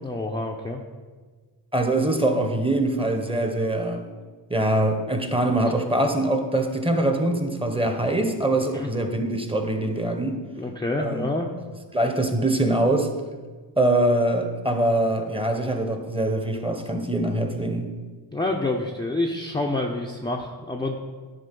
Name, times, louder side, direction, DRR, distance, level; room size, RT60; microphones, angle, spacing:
voice 1, 0.0-0.8 8.7-8.9 10.6-11.5 18.3-21.0, left 2 dB, 10° left, 0 dB, 0.7 m, -27 dB
voice 2, 1.7-4.0 4.5-10.4 11.0-11.3 11.9-13.1 13.8-17.9, right 1 dB, 10° right, 5 dB, 1.1 m, -23 dB
10.5 x 3.7 x 5.3 m, 1.4 s
cardioid pair, 55°, 46 cm